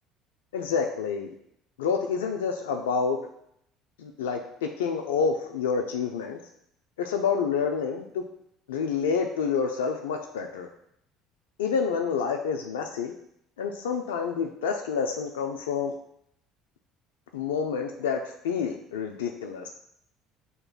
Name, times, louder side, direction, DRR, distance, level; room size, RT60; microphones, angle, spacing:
voice 1, 0.5-1.3 1.8-3.2 4.0-6.4 7.0-8.3 8.7-10.7 11.6-13.1 13.6-15.9 17.3-19.7, left 6 dB, 90° left, 4 dB, 0.3 m, -28 dB
7.6 x 2.9 x 2.3 m, 0.74 s
hypercardioid pair, 75°, 0 cm